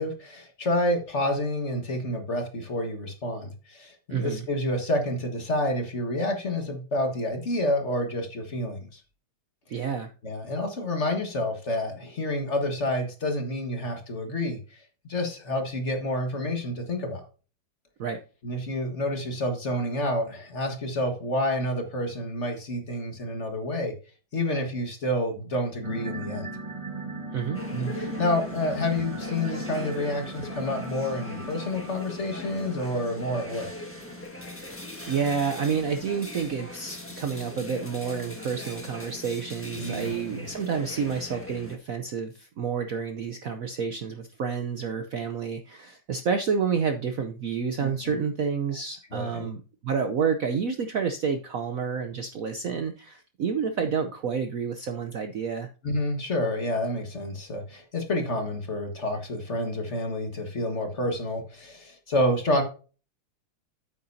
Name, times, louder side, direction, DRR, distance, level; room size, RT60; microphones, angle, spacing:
voice 1, 0.0-9.0 10.2-14.8 15.1-17.2 18.4-23.9 24.3-26.5 27.7-33.7 39.8-40.4 47.8-48.0 49.1-49.5 55.8-62.6, left 1 dB, 40° left, 4 dB, 1.7 m, -29 dB
voice 2, 4.1-4.5 9.7-10.1 18.0-18.2 27.3-27.6 34.4-34.7 35.1-55.7, right 6 dB, 60° right, 7 dB, 0.9 m, -29 dB
sound 1, 25.8-34.2, right 1 dB, 20° right, 1.0 m, -37 dB
sound 2, 27.5-41.8, left 2 dB, 5° left, 1.3 m, -41 dB
9.1 x 8.6 x 2.7 m, 0.35 s
omnidirectional pair, 2.1 m